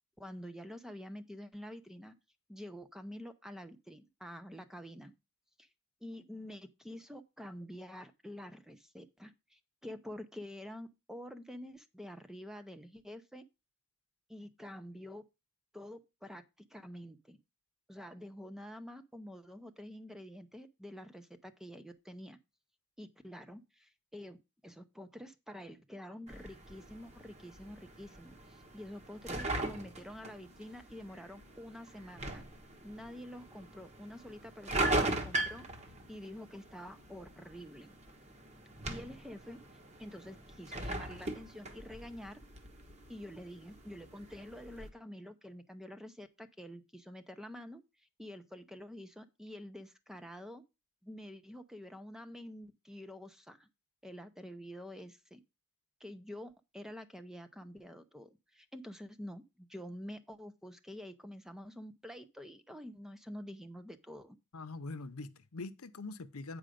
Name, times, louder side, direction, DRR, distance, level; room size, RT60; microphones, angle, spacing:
voice 1, 0.2-2.1 2.5-5.1 5.6-5.7 6.0-13.4 14.3-15.2 15.7-16.4 16.7-17.4 17.9-22.4 23.0-24.4 24.6-32.5 32.8-35.7 36.1-38.0 38.9-39.6 40.0-42.4 43.1-47.8 48.2-50.6 51.0-53.7 54.0-55.4 56.0-64.4, equal, ahead, 0.6 m, -48 dB
sound 1, 26.3-44.9, right 2 dB, 30° right, 1.3 m, -40 dB
voice 2, 64.5-66.6, left 3 dB, 75° left, 0.8 m, -43 dB
8.9 x 5.0 x 5.1 m
head